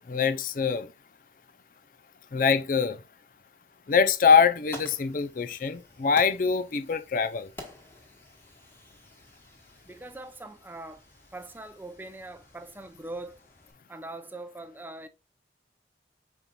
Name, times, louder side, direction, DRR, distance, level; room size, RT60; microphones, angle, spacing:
voice 1, 0.1-0.9 2.3-3.0 3.9-7.5, left 6 dB, 50° left, 0.4 m, -24 dB
Fire, 4.3-13.7, left 1 dB, 10° left, 1.1 m, -50 dB
voice 2, 9.8-11.0 11.3-13.4 13.9-15.1, right 2 dB, 10° right, 0.4 m, -42 dB
5.2 x 4.5 x 2.2 m
head